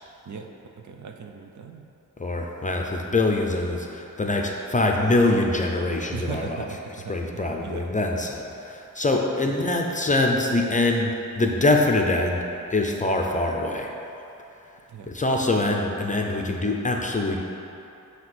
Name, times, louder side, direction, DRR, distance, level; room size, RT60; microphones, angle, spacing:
voice 1, 0.8-1.8 6.1-7.9 9.5-9.6 14.9-15.1, right 6 dB, 60° right, 3 dB, 0.6 m, -38 dB
voice 2, 2.2-6.6 7.1-13.9 15.1-17.4, left 2 dB, 20° left, 1 dB, 0.6 m, -24 dB
7.6 x 2.9 x 6.0 m, 2.9 s
wide cardioid pair, 95°, 34 cm